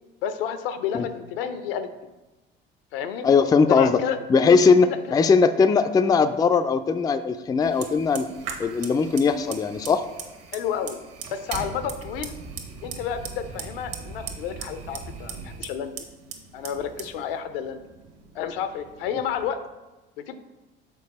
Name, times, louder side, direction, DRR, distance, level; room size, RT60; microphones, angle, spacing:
voice 1, 0.2-2.1 2.9-3.3 3.7-4.2 4.9-5.0 10.5-11.0 11.3-12.4 12.8-15.9 16.5-17.8 18.3-19.6 20.2-20.4, left 8 dB, 75° left, 10 dB, 0.6 m, -30 dB
voice 2, 3.2-4.0 4.3-8.3 8.6-10.0, left 5 dB, 15° left, 10 dB, 0.3 m, -19 dB
Fire, 7.6-19.4, right 5 dB, 55° right, 1.2 m, -39 dB
6.9 x 4.5 x 4.0 m, 1.1 s
figure-of-eight pair, 60°, 29 cm